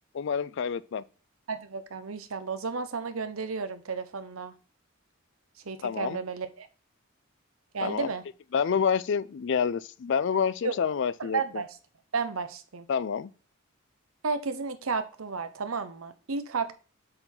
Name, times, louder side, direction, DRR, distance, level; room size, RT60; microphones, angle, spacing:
voice 1, 0.1-1.0 5.8-6.2 7.8-8.1 8.5-11.6 12.9-13.3, left 6 dB, 60° left, 0.4 m, -28 dB
voice 2, 1.5-4.5 5.6-6.7 7.7-8.2 10.6-10.8 11.3-11.7 12.1-12.9 14.2-16.7, right 4 dB, 85° right, 0.8 m, -32 dB
7.8 x 4.5 x 3.8 m
head